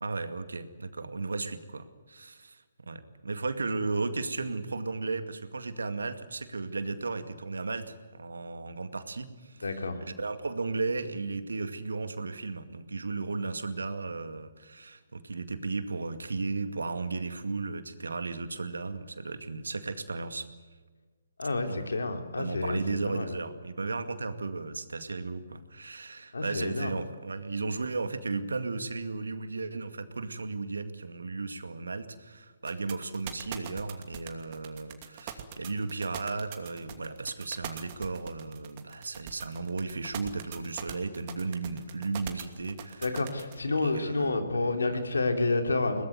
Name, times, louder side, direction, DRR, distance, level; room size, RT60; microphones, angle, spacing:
voice 1, 0.0-9.7 10.0-20.5 21.7-21.9 22.4-43.1 43.7-45.0, right 3 dB, 80° right, 10 dB, 2.2 m, -35 dB
voice 2, 9.6-10.0 21.4-23.3 26.3-27.0 43.0-46.1, left 3 dB, 80° left, 6 dB, 3.3 m, -29 dB
sound 1, 32.7-43.6, right 11 dB, 35° right, 2.7 m, -41 dB
22.0 x 19.5 x 9.5 m, 1.4 s
figure-of-eight pair, 135°, 0 cm